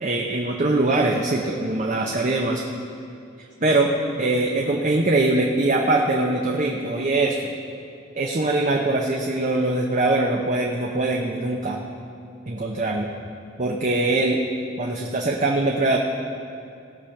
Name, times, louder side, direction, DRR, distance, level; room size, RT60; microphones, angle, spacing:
voice 1, 0.0-2.6 3.6-3.9 4.2-7.4 8.2-11.8 12.5-13.1 13.6-14.4 14.8-16.0, right 2 dB, 40° right, 0 dB, 0.8 m, -22 dB
18.0 x 6.9 x 5.8 m, 2.6 s
head